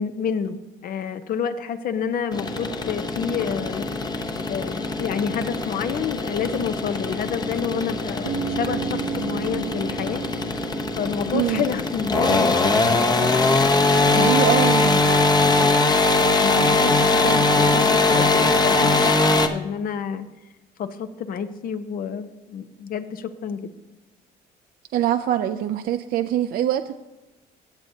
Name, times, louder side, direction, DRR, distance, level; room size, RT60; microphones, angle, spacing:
voice 1, 0.0-3.9 4.5-10.2 11.0-12.8 14.0-14.5 16.4-19.2 19.5-20.3 20.8-23.7, left 7 dB, 60° left, 10 dB, 0.9 m, -28 dB
sound 1, 2.3-19.5, left 3 dB, 25° left, 0.8 m, -21 dB
Bass guitar, 8.2-12.2, right 7 dB, 80° right, 1.1 m, -33 dB
voice 2, 11.3-11.6 14.1-15.1 24.9-26.9, right 11 dB, 60° right, 7 dB, 0.5 m, -23 dB
16.5 x 7.9 x 2.8 m, 1.1 s
cardioid pair, 110°, 17 cm